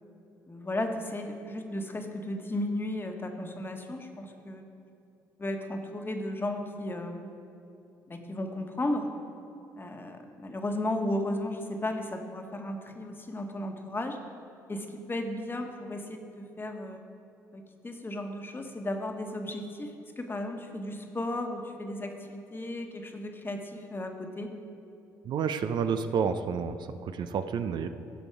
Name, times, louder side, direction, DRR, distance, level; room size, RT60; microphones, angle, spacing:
voice 1, 0.5-4.7 5.4-7.3 8.1-9.1 9.8-14.2 14.7-17.0 17.5-24.5, left 1 dB, 25° left, 4 dB, 1.4 m, -35 dB
voice 2, 25.2-27.9, right 6 dB, 60° right, 9 dB, 0.6 m, -30 dB
15.5 x 5.2 x 4.8 m, 2.8 s
hypercardioid pair, 55°, 9 cm